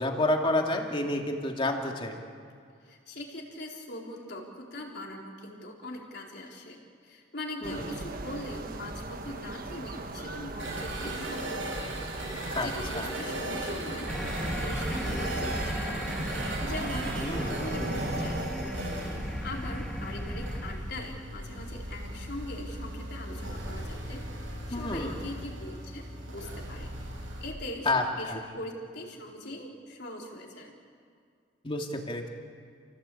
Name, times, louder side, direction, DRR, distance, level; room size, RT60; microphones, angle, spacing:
voice 1, 0.0-2.2 7.6-7.8 12.5-12.7 12.9-13.1 17.2-17.5 24.7-25.1 27.9-28.4 31.6-32.3, left 2 dB, 30° left, 2 dB, 2.6 m, -29 dB
voice 2, 2.8-11.9 12.5-17.2 17.5-18.7 19.4-26.9 27.4-30.7, left 1 dB, 60° left, -1 dB, 4.1 m, -41 dB
sound 1, 7.6-18.5, right 2 dB, 50° right, 1.5 m, -38 dB
sound 2, 10.6-27.5, right 1 dB, 90° right, 7.0 m, -37 dB
sound 3, 14.1-20.8, equal, 5° left, 2.1 m, -35 dB
29.5 x 17.0 x 8.6 m, 2.2 s
head